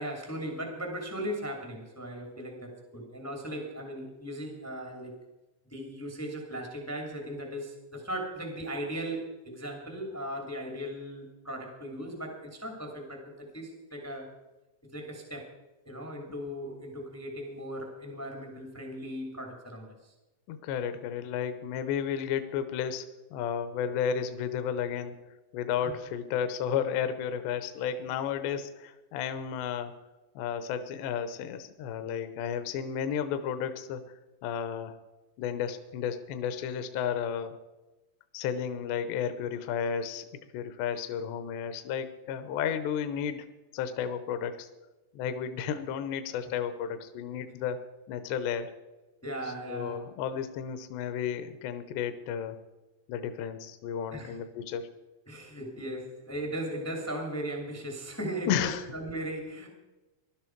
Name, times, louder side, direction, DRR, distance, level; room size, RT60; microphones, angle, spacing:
voice 1, 0.0-5.1 5.7-14.3 14.9-15.5 15.8-20.1 25.8-25.9 49.2-50.0 54.1-54.3 55.3-59.7, right 1 dB, 15° left, 1 dB, 0.4 m, -37 dB
voice 2, 20.5-25.1 25.5-29.9 30.4-34.0 34.4-34.9 35.4-37.5 38.3-40.3 40.5-43.5 43.7-44.7 45.1-47.8 48.1-48.7 49.4-52.6 53.1-54.9 58.5-58.8, left 8 dB, 75° left, 10 dB, 2.8 m, -32 dB
19.0 x 12.0 x 4.6 m, 1.1 s
omnidirectional pair, 5.4 m